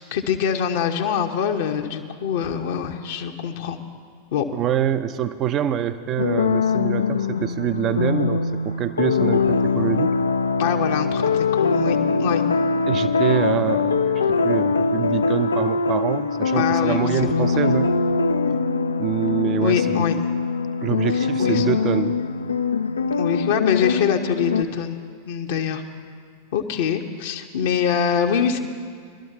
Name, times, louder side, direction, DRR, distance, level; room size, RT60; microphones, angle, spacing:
voice 1, 0.0-3.8 4.3-4.5 10.6-12.4 16.5-17.8 19.6-20.2 21.1-21.6 23.2-25.0 25.3-25.8 26.5-28.6, left 8 dB, 55° left, 3 dB, 0.8 m, -24 dB
voice 2, 4.5-10.2 12.9-14.0 14.3-17.9 19.0-19.9 20.8-22.2, right 10 dB, 30° right, 12 dB, 0.5 m, -25 dB
sound 1, 6.2-24.6, left 4 dB, 75° left, 0.4 m, -22 dB
21.5 x 12.0 x 2.8 m, 2.2 s
figure-of-eight pair, 90°, 0 cm